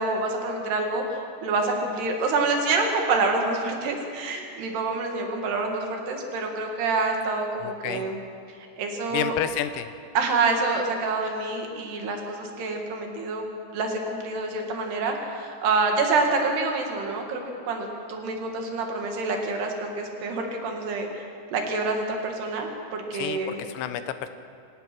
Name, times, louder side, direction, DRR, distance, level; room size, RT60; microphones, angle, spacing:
voice 1, 0.0-8.2 8.5-9.3 10.1-13.5 13.7-23.6, right 3 dB, 70° right, 2 dB, 4.1 m, -27 dB
voice 2, 7.6-8.1 9.1-9.9 23.1-24.3, left 10 dB, 85° left, 10 dB, 3.2 m, -30 dB
25.5 x 17.5 x 6.2 m, 2.5 s
omnidirectional pair, 5.0 m